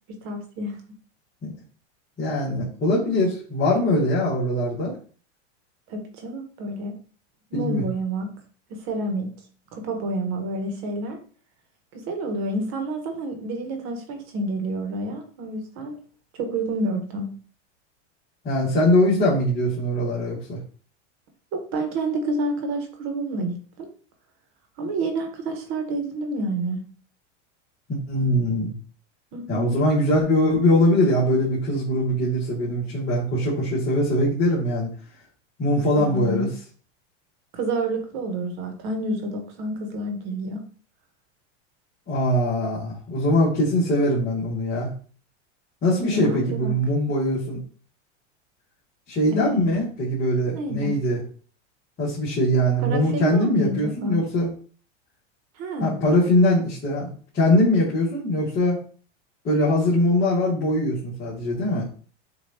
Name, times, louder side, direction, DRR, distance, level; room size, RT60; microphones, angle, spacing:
voice 1, 0.1-0.8 5.9-7.0 7.5-8.3 8.7-9.3 9.7-11.2 11.9-16.0 16.4-17.3 21.5-23.9 24.8-26.8 29.3-29.9 36.0-36.5 37.5-40.6 46.0-46.8 49.3-49.8 50.5-50.9 52.8-54.2 55.6-55.9, right 1 dB, 50° right, 4 dB, 1.3 m, -29 dB
voice 2, 2.2-4.9 7.5-7.8 18.4-20.6 28.1-28.7 29.5-34.9 35.6-36.5 42.1-44.9 45.8-47.6 49.1-51.2 52.0-54.5 55.8-58.8 59.4-61.8, left 1 dB, 30° left, -8 dB, 2.0 m, -22 dB
6.6 x 2.8 x 2.8 m, 0.41 s
supercardioid pair, 135°, 37 cm